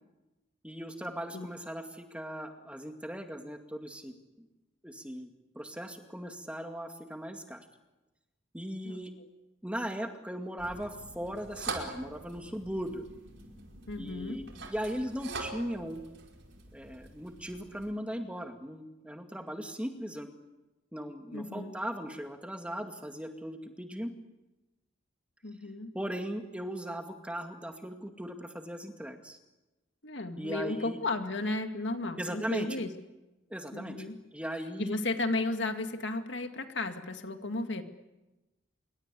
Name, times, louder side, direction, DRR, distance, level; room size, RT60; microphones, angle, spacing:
voice 1, 0.6-4.5 4.8-5.3 5.5-7.6 8.5-9.1 9.6-13.0 14.0-16.0 16.7-20.3 20.9-24.1 25.9-29.4 30.4-31.0 32.2-32.8 33.5-34.1 34.3-35.0, equal, 5° right, 5 dB, 2.1 m, -38 dB
voice 2, 8.8-9.3 13.9-14.4 21.3-21.7 25.4-25.9 30.0-32.9 33.7-34.2 34.8-37.8, left 2 dB, 60° left, 6 dB, 2.2 m, -34 dB
sound 1, 10.6-17.9, right 3 dB, 65° right, 5.2 m, -44 dB
27.0 x 24.0 x 8.5 m, 1.0 s
head